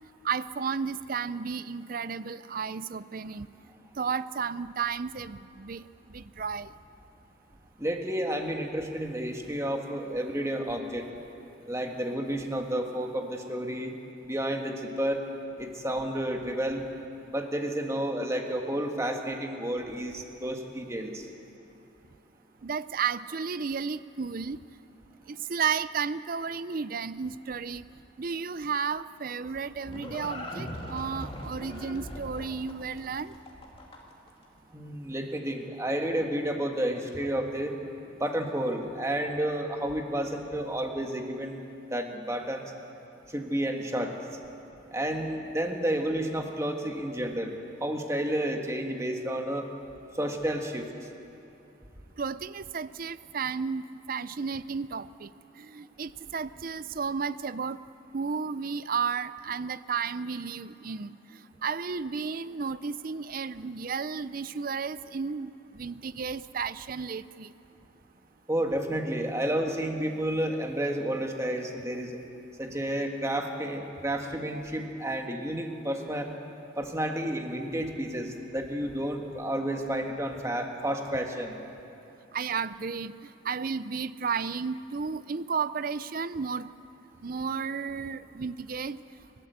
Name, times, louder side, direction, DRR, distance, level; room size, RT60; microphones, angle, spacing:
voice 1, 0.2-3.5 4.0-5.8 6.1-6.7 22.6-24.6 25.3-27.8 28.2-33.3 52.2-55.3 55.6-57.8 58.1-61.1 61.6-67.5 82.3-86.7 87.2-89.0, right 5 dB, 45° right, 16 dB, 0.5 m, -33 dB
voice 2, 7.8-11.0 11.7-13.9 14.2-15.2 15.6-16.8 17.3-21.3 34.7-37.7 38.2-41.6 41.9-42.7 43.3-44.2 44.9-49.7 50.1-50.8 68.5-72.2 72.6-76.3 76.8-81.6, right 1 dB, 15° right, 3 dB, 1.7 m, -31 dB
Livestock farm animals working animals, 29.3-34.3, left 1 dB, 25° left, 2.4 m, -40 dB
29.0 x 13.0 x 8.1 m, 2.8 s
head